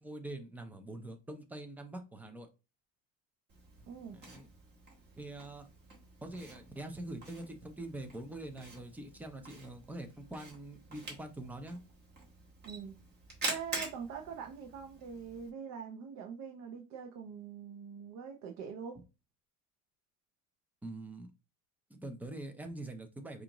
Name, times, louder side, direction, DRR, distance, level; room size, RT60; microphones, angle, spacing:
voice 1, 0.0-2.5 4.1-4.5 5.2-5.7 6.2-11.8 20.8-21.3 21.9-23.4, right 1 dB, 5° right, 0.4 m, -44 dB
Camera, 3.5-15.5, right 2 dB, 30° right, 1.5 m, -46 dB
voice 2, 3.9-4.2 12.7-12.9 13.5-19.0, right 7 dB, 50° right, 0.6 m, -44 dB
4.8 x 2.5 x 2.9 m
cardioid pair, 145°, 36 cm